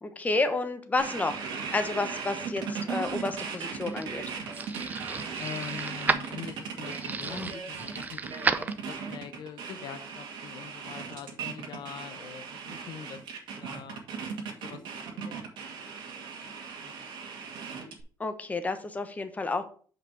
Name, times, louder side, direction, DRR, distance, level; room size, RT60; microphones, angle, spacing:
voice 1, 0.0-4.2 18.2-19.6, left 3 dB, 20° left, 8 dB, 1.1 m, -30 dB
sound 1, 1.0-18.0, right 6 dB, 70° right, 2.1 m, -37 dB
sound 2, 3.3-9.2, right 4 dB, 20° right, 0.6 m, -34 dB
voice 2, 5.4-13.2 13.6-14.0 14.6-14.8 15.2-15.7 16.4-16.5 16.8-16.9, left 8 dB, 65° left, 8 dB, 0.9 m, -43 dB
6.0 x 5.1 x 6.0 m, 0.43 s
cardioid pair, 105°, 8 cm